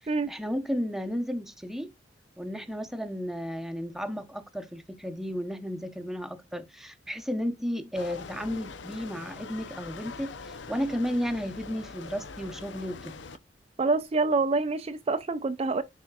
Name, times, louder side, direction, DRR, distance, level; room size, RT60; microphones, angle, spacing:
voice 1, 0.3-1.9 2.4-13.2, equal, ahead, 0.8 m, -33 dB
sound 1, 7.9-13.4, left 4 dB, 85° left, 0.7 m, -43 dB
voice 2, 13.8-15.8, right 3 dB, 35° right, 0.4 m, -26 dB
10.5 x 4.4 x 2.3 m
head